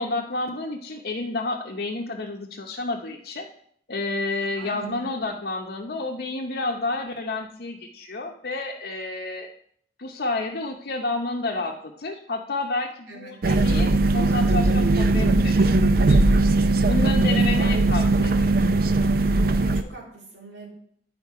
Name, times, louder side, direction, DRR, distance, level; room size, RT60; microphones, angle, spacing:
voice 1, 0.0-3.5 3.9-9.5 10.0-15.5 16.1-16.2 16.9-18.6, left 2 dB, 65° left, -2 dB, 0.8 m, -30 dB
voice 2, 4.6-5.4 13.1-13.7 17.3-17.8 19.6-20.7, right 2 dB, 90° right, -2 dB, 2.6 m, -43 dB
sound 1, 13.4-19.8, right 2 dB, 55° right, 0.5 m, -19 dB
9.8 x 5.2 x 4.7 m, 0.65 s
head